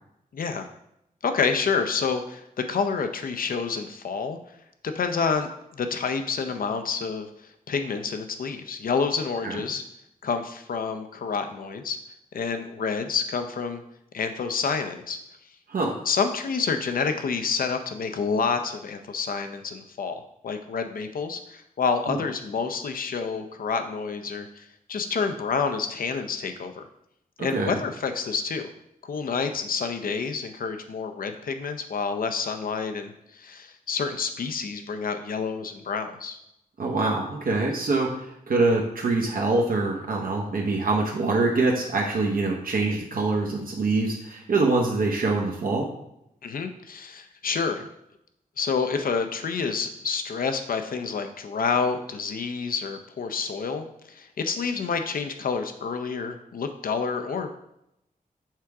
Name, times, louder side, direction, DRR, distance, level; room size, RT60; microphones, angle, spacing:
voice 1, 0.3-0.7 1.2-4.4 4.8-7.3 7.7-9.8 10.2-12.0 12.3-13.8 14.1-15.2 16.1-26.9 27.4-28.6 29.0-36.4 46.4-47.9 48.6-57.5, left 5 dB, 70° left, 7 dB, 0.6 m, -28 dB
voice 2, 27.4-27.8 36.8-45.9, right 3 dB, 70° right, -1 dB, 0.9 m, -24 dB
7.4 x 3.5 x 4.8 m, 0.81 s
wide cardioid pair, 170°, 15 cm